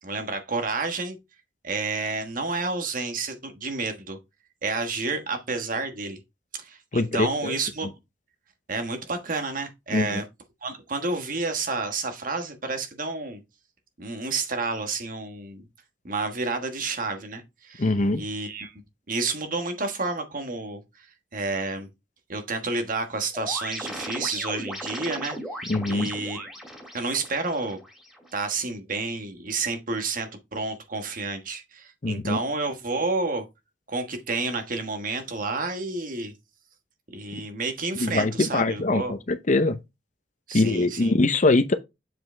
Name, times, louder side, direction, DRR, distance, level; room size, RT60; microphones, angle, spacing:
voice 1, 0.0-1.2 1.6-4.2 4.6-6.2 6.5-7.9 8.7-10.2 10.6-13.4 14.0-15.6 16.0-17.9 18.1-18.7 19.1-21.1 21.3-21.9 22.3-25.4 25.9-26.5 26.9-27.8 28.3-33.5 33.9-36.3 37.1-39.2 40.5-41.1, right 3 dB, 50° right, 1.3 m, -30 dB
voice 2, 6.9-7.6 9.9-10.2 17.8-18.2 25.7-26.1 32.0-32.4 38.0-39.8 40.5-41.7, left 2 dB, 40° left, 0.7 m, -23 dB
sound 1, 23.3-28.3, equal, ahead, 2.5 m, -37 dB
7.6 x 4.9 x 3.3 m
head